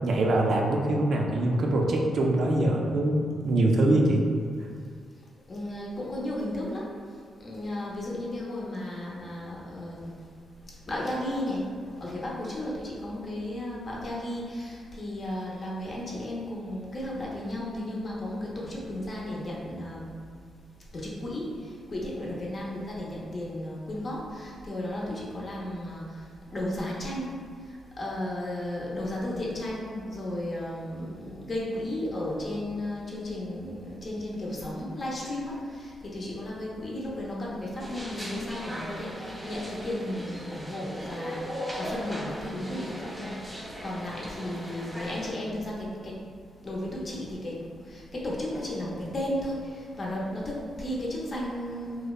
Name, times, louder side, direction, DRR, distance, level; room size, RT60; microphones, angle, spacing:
voice 1, 0.0-4.2, right 1 dB, 65° right, 0 dB, 0.3 m, -23 dB
voice 2, 5.5-6.9 7.4-10.1 10.9-11.7 12.0-20.1 20.9-21.5 21.9-26.0 26.5-27.3 28.0-46.2 46.6-47.6 47.9-52.1, left 1 dB, 45° left, -4 dB, 0.6 m, -34 dB
sound 1, 37.8-45.3, equal, 10° right, 0.5 m, -38 dB
2.8 x 2.0 x 2.3 m, 2.1 s
cardioid pair, 75°, 0 cm